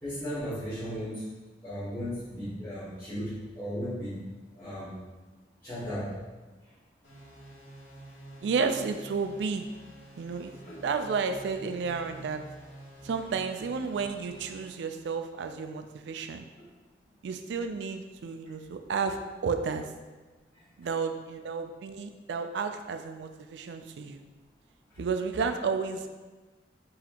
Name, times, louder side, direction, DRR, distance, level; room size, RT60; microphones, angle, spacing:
voice 1, 0.0-1.2 1.6-4.3 4.6-5.0 5.6-6.2 10.6-10.7 20.5-20.6, equal, 10° left, -16 dB, 1.1 m, -36 dB
sound 1, 7.0-14.7, right 1 dB, 85° left, 1.4 m, -49 dB
voice 2, 8.4-9.7 10.2-10.5 10.8-12.4 13.0-16.4 17.2-19.9 20.8-24.2 25.0-26.1, right 5 dB, 70° right, 7 dB, 0.3 m, -32 dB
4.0 x 2.8 x 2.8 m, 1.2 s
head